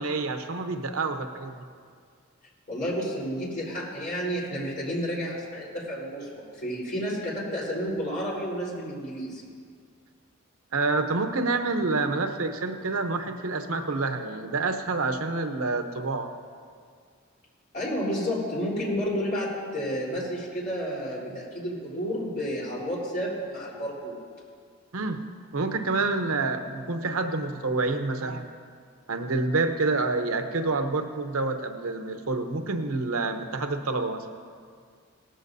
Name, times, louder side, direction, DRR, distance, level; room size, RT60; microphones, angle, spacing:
voice 1, 0.0-1.6 10.7-16.3 24.9-25.2 25.5-28.5 29.1-34.2, right 3 dB, 85° right, 7 dB, 0.8 m, -28 dB
voice 2, 2.7-9.5 17.7-24.2, equal, 45° left, -6 dB, 3.9 m, -31 dB
18.0 x 14.0 x 2.7 m, 2.1 s
head